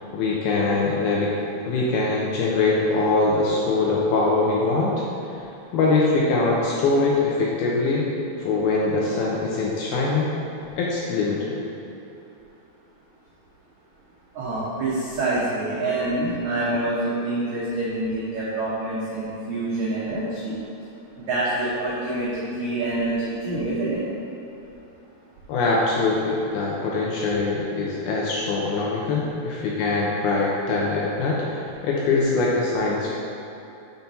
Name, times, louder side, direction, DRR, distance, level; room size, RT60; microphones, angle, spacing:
voice 1, 0.1-1.3 1.6-5.0 5.7-8.1 8.4-10.3 10.8-11.6 25.5-33.1, left 3 dB, 75° left, -4 dB, 2.3 m, -23 dB
voice 2, 14.3-20.6 21.2-24.0, right 2 dB, 90° right, -8 dB, 1.6 m, -26 dB
5.9 x 5.7 x 5.3 m, 2.8 s
omnidirectional pair, 5.0 m